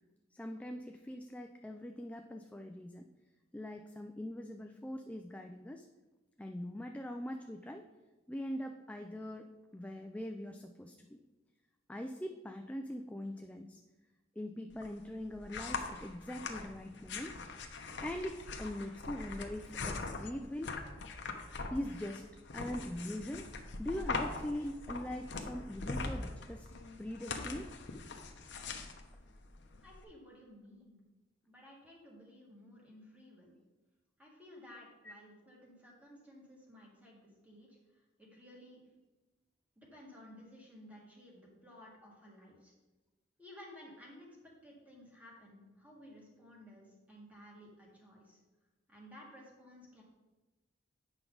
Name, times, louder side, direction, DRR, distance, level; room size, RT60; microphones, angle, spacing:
voice 1, 0.3-3.0 3.5-5.9 6.4-7.9 8.3-11.2 11.9-13.8 14.4-17.4 18.0-20.7 21.7-22.3 22.5-23.5 23.8-26.7 27.0-27.7 35.0-35.1, left 1 dB, 5° left, 4 dB, 0.3 m, -42 dB
sound 1, 14.7-30.0, left 3 dB, 65° left, 0.8 m, -42 dB
voice 2, 29.8-31.0 31.4-33.6 34.2-37.7 38.2-38.8 39.8-42.7 43.4-48.4 48.9-50.0, left 1 dB, 10° right, -4 dB, 1.9 m, -55 dB
8.8 x 5.9 x 3.9 m, 1.2 s
head